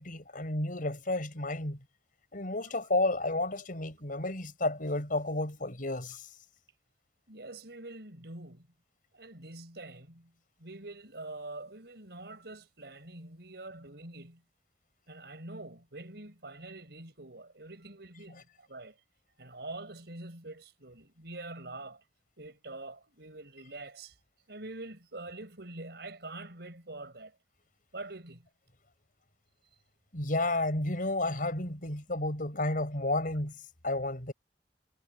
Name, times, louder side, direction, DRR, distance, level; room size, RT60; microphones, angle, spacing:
voice 1, 0.0-1.8 2.3-6.3 30.1-33.5 33.8-34.3, left 2 dB, 50° left, 5.9 m, -31 dB
voice 2, 7.3-8.7 9.1-10.3 10.6-14.4 15.1-19.0 19.4-22.0 22.4-24.1 24.5-27.4 27.9-28.5, right 2 dB, 70° right, 6.5 m, -45 dB
head